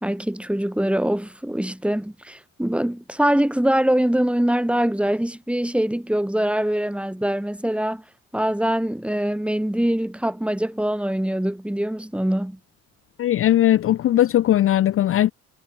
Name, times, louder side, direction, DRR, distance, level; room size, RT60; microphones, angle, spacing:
voice 1, 0.0-8.0 8.3-12.6, right 1 dB, 5° right, 2.6 m, -23 dB
voice 2, 13.2-15.3, left 12 dB, 50° left, 0.4 m, -18 dB
cardioid pair, 90°, 30 cm